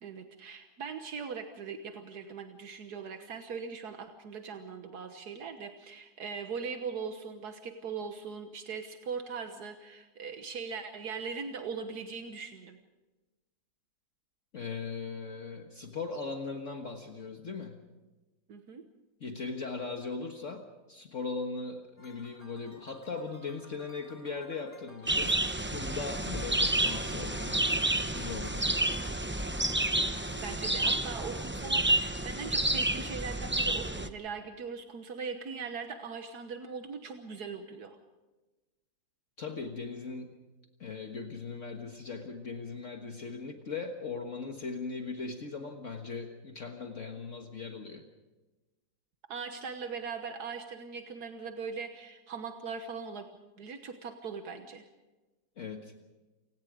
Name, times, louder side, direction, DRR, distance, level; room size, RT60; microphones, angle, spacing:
voice 1, 0.0-12.8 18.5-18.9 30.3-38.0 49.3-53.3 53.6-54.8, right 5 dB, 80° right, 6 dB, 1.8 m, -40 dB
voice 2, 14.5-17.8 19.2-25.4 25.6-28.9 39.4-40.4 40.8-48.0 55.6-55.9, left 4 dB, 50° left, 4 dB, 1.8 m, -39 dB
sound 1, 22.0-31.4, left 1 dB, 25° left, 2.9 m, -56 dB
sound 2, 25.1-34.1, right 1 dB, 10° right, 0.6 m, -30 dB
29.0 x 18.0 x 5.0 m, 1.2 s
omnidirectional pair, 1.7 m